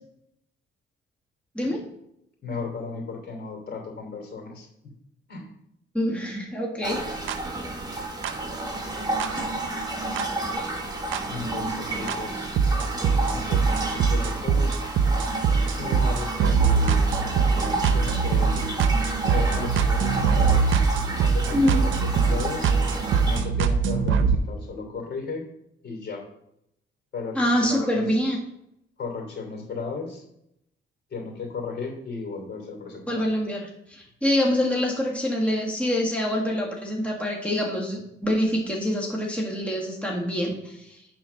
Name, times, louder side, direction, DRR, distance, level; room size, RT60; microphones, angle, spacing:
voice 1, 2.4-4.9 5.3-5.5 11.3-12.5 13.3-14.8 15.8-17.0 17.9-18.6 19.2-20.7 21.2-22.7 23.2-25.4 25.8-26.2 27.1-28.2 29.0-30.2 31.1-33.3, left 4 dB, 55° left, 2 dB, 3.0 m, -35 dB
voice 2, 5.9-7.2 21.5-21.8 27.4-28.4 33.1-41.0, left 1 dB, 5° left, -2 dB, 1.9 m, -25 dB
sound 1, 6.8-23.4, right 2 dB, 20° right, 1.8 m, -31 dB
sound 2, 7.3-7.4 8.2-8.3 9.2-9.3 10.2-10.3 11.1-11.2 12.1-12.2 12.6-24.4, right 5 dB, 80° right, 0.7 m, -22 dB
9.2 x 4.2 x 5.9 m, 0.78 s
cardioid pair, 90°, 20 cm